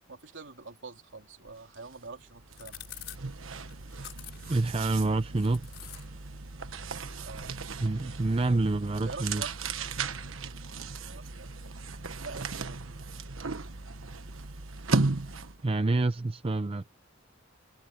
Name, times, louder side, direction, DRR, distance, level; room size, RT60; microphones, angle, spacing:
voice 1, 0.1-3.0 7.2-7.6 9.0-9.9 11.0-11.5 12.2-13.0, right 4 dB, 65° right, 3.6 m, -46 dB
sound 1, 1.1-12.7, left 12 dB, 60° left, 5.4 m, -53 dB
sound 2, 1.7-1.9 2.2-15.7, right 3 dB, 90° right, 1.3 m, -36 dB
voice 2, 4.5-5.7 7.8-9.4 15.6-16.8, right 2 dB, 30° right, 0.5 m, -27 dB
head